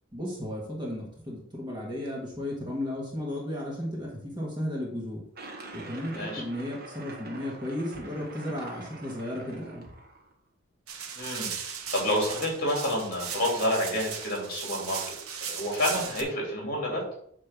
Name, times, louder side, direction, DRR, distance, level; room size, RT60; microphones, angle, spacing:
voice 1, 0.1-5.2 5.7-9.8, left 1 dB, 20° right, -3 dB, 1.6 m, -34 dB
sound 1, 5.3-10.3, right 2 dB, 45° right, 1.1 m, -45 dB
sound 2, 10.9-16.2, right 7 dB, 80° right, 1.0 m, -37 dB
voice 2, 11.2-15.0 15.4-17.0, left 1 dB, 40° left, -2 dB, 2.9 m, -29 dB
8.4 x 3.3 x 6.1 m, 0.68 s
head